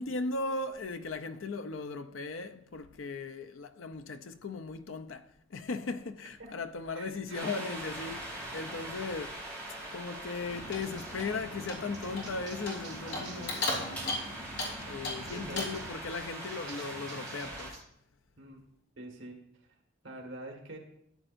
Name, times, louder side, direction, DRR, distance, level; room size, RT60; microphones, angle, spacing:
voice 1, 0.0-9.4 9.9-13.8 14.9-17.8, left 3 dB, 85° left, 0.6 m, -37 dB
voice 2, 6.9-7.6 13.0-13.9 15.3-15.8 18.4-18.6 19.0-19.4 20.0-20.8, right 2 dB, 80° right, 1.8 m, -45 dB
sound 1, 7.3-17.7, right 1 dB, 10° left, 3.5 m, -42 dB
Clock, 10.4-15.9, left 2 dB, 60° left, 3.4 m, -38 dB
sound 2, 10.8-14.1 14.5-17.8, right 4 dB, 20° right, 2.5 m, -53 dB
14.0 x 8.8 x 2.6 m
head